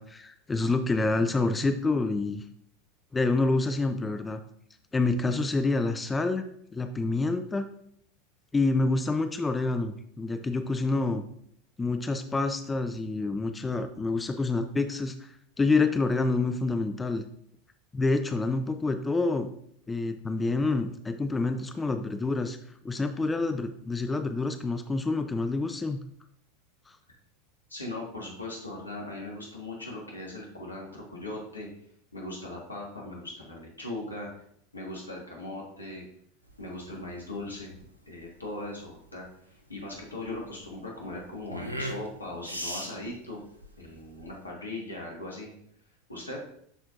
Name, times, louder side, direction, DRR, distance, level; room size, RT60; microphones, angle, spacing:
voice 1, 0.0-2.4 3.1-4.4 4.9-6.4 6.7-7.7 8.5-11.2 11.8-17.2 17.9-19.5 19.9-22.6 22.8-26.0, left 3 dB, 15° left, 8 dB, 0.5 m, -27 dB
voice 2, 27.7-31.7 32.1-34.3 34.7-36.0 36.6-37.7 38.1-43.4 43.8-45.5 46.1-46.4, left 2 dB, 80° left, -1 dB, 1.5 m, -39 dB
sound 1, 36.4-44.5, equal, 90° right, 0.7 m, -40 dB
12.0 x 4.4 x 2.5 m, 0.69 s
figure-of-eight pair, 85°, 0 cm